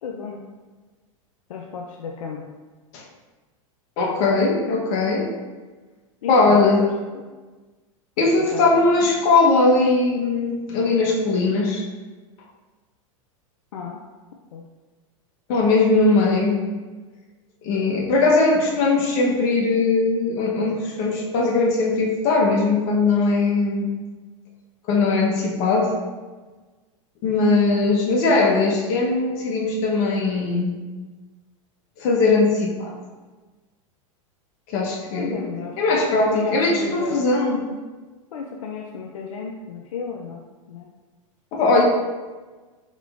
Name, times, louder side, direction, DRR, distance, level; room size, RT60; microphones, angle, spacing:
voice 1, 0.0-0.4 1.5-2.5 6.2-7.2 8.2-8.9 13.7-14.0 14.5-14.6 35.1-35.8 36.1-37.3 38.3-40.9, left 6 dB, 80° left, 1 dB, 0.5 m, -34 dB
voice 2, 4.0-5.3 6.3-6.9 8.2-11.8 15.5-16.6 17.6-23.9 24.9-25.9 27.2-30.7 32.0-32.9 34.7-35.5 35.8-37.6 41.5-41.8, left 3 dB, 50° left, -1 dB, 1.0 m, -20 dB
4.4 x 3.6 x 2.4 m, 1.3 s
hypercardioid pair, 115°, 17 cm